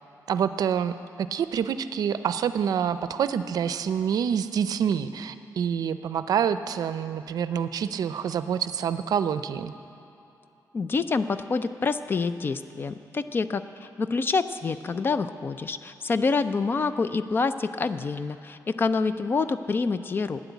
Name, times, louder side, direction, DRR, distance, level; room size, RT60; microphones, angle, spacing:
voice 1, 0.3-9.7, right 8 dB, 65° right, 12 dB, 0.5 m, -27 dB
voice 2, 10.7-20.4, left 4 dB, 30° left, 12 dB, 0.4 m, -27 dB
12.0 x 10.0 x 8.2 m, 2.9 s
wide cardioid pair, 160°, 7 cm